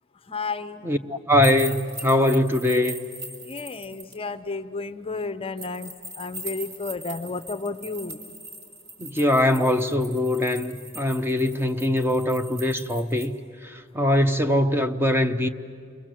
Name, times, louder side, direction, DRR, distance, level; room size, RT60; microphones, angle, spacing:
voice 1, 0.3-0.9 3.4-8.2, left 3 dB, 30° left, 0.6 m, -32 dB
voice 2, 0.8-3.0 9.0-13.4 13.6-15.5, left 1 dB, 10° right, 0.6 m, -22 dB
sound 1, 1.4-4.1 5.6-13.3, right 1 dB, 55° right, 4.7 m, -40 dB
29.0 x 22.5 x 7.5 m
head